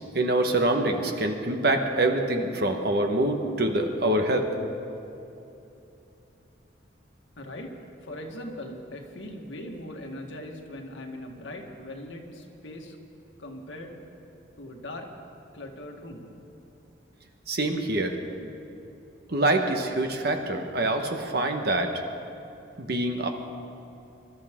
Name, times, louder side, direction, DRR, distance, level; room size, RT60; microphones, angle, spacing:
voice 1, 0.1-4.5 17.5-18.2 19.3-21.9 22.8-23.3, right 2 dB, 55° right, 4 dB, 1.3 m, -25 dB
voice 2, 7.4-7.7 8.1-13.0 13.4-13.9 14.6-15.1 15.5-16.3, left 1 dB, 80° left, 1 dB, 1.8 m, -40 dB
26.0 x 12.5 x 3.7 m, 2.8 s
head